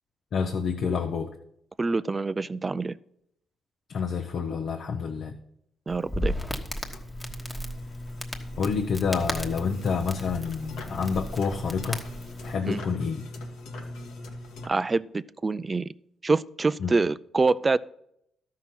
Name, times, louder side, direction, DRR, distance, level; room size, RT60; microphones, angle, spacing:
voice 1, 0.3-1.4 3.9-5.4 8.6-12.0 12.4-13.2 16.8-16.9, left 5 dB, 60° left, 5 dB, 0.8 m, -28 dB
voice 2, 1.8-3.0 5.9-6.3 12.6-12.8 14.7-15.9 16.2-17.8, right 3 dB, 25° right, 18 dB, 0.4 m, -26 dB
Crackle, 5.9-12.5, equal, 10° left, 1.2 m, -36 dB
sound 1, 6.8-14.7, left 1 dB, 85° left, 1.6 m, -40 dB
12.5 x 5.7 x 6.0 m, 0.74 s
cardioid pair, 90°, 0 cm